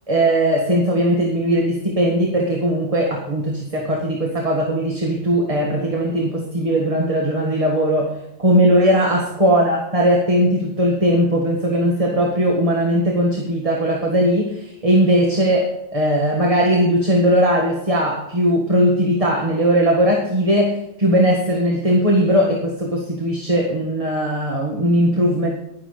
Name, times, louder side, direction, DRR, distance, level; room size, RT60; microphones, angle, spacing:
voice 1, 0.1-25.5, equal, 25° right, -1 dB, 1.7 m, -19 dB
11.5 x 10.0 x 5.1 m, 0.86 s
omnidirectional pair, 1.4 m